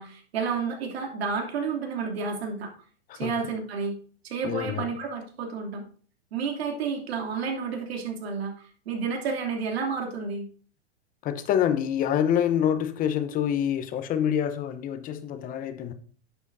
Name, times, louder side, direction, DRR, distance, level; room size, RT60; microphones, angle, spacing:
voice 1, 0.0-2.7 3.1-4.0 4.2-5.8 6.3-8.5 8.8-10.5, right 5 dB, 70° right, 2.9 m, -30 dB
voice 2, 3.1-3.4 4.4-4.8 11.2-15.9, left 9 dB, 25° left, 0.9 m, -26 dB
11.0 x 7.9 x 2.7 m
hypercardioid pair, 130°, 32 cm